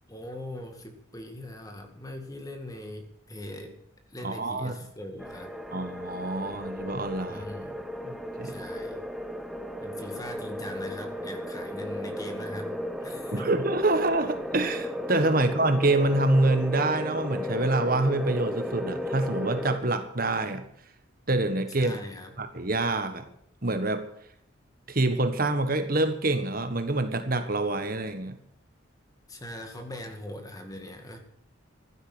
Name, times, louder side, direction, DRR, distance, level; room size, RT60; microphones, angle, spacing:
voice 1, 0.1-3.7 4.1-5.5 7.3-7.8 8.4-9.0 9.8-12.7 13.0-13.5 15.4-15.5 21.7-22.3 29.3-31.2, left 1 dB, 15° left, 5 dB, 2.1 m, -41 dB
voice 2, 4.2-4.8 5.7-7.5 8.0-8.6 13.3-20.6 21.3-21.9 22.4-23.3 23.6-24.0 24.9-28.4, right 2 dB, 45° right, 8 dB, 1.5 m, -26 dB
sound 1, 5.2-19.8, equal, ahead, 1.0 m, -35 dB
15.5 x 12.0 x 6.2 m, 0.67 s
head